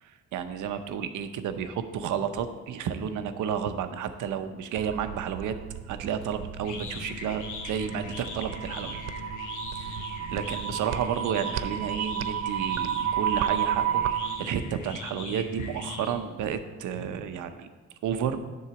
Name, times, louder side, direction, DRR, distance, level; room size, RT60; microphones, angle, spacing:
voice 1, 0.0-5.6 5.9-9.0 9.7-10.0 10.3-14.0 14.4-17.7 18.0-18.4, right 8 dB, 80° right, 9 dB, 0.8 m, -31 dB
sound 1, 4.8-14.4, right 10 dB, 60° right, 0.5 m, -32 dB
sound 2, 6.2-16.5, left 4 dB, 80° left, 1.2 m, -41 dB
10.5 x 4.0 x 6.9 m, 1.3 s
cardioid pair, 90°, 30 cm